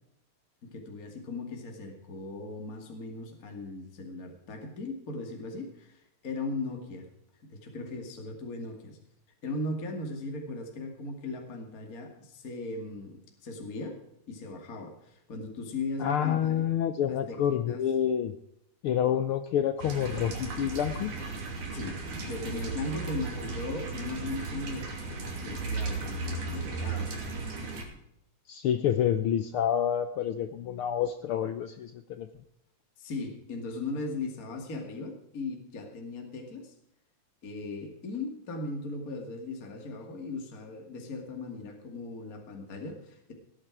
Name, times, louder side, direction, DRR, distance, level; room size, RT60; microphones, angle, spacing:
voice 1, 0.6-7.1 7.4-9.0 9.4-14.0 14.3-16.6 17.1-17.4 17.7-17.8 21.7-27.1 33.0-36.7 37.4-43.3, left 2 dB, 30° left, 2 dB, 2.4 m, -38 dB
voice 2, 16.0-18.3 18.8-21.1 28.5-32.3, left 9 dB, 85° left, 10 dB, 1.2 m, -28 dB
sound 1, 19.8-27.8, right 3 dB, 85° right, 4.4 m, -35 dB
18.0 x 10.0 x 4.8 m, 0.76 s
omnidirectional pair, 3.4 m